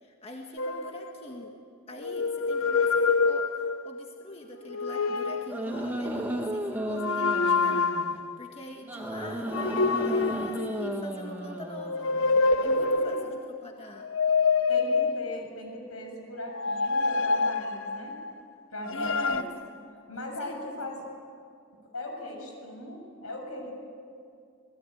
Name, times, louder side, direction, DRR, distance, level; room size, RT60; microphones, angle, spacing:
voice 1, 0.0-1.6 1.9-12.1 12.6-14.1 18.9-19.5 20.4-20.5, left 1 dB, 25° left, 2 dB, 1.7 m, -44 dB
sound 1, 0.6-1.5 2.0-4.0 4.6-5.6 6.9-8.3 9.5-11.2 11.7-13.4 14.0-15.6 16.5-18.3 18.8-19.4, left 4 dB, 70° left, 0.9 m, -27 dB
sound 2, 5.5-8.2 8.9-12.4, right 1 dB, 10° right, 2.1 m, -34 dB
voice 2, 12.6-13.4 14.7-18.2 18.7-19.4 20.1-21.1 21.8-23.8, left 1 dB, 85° left, 2 dB, 7.0 m, -39 dB
27.5 x 20.0 x 9.3 m, 2.4 s
head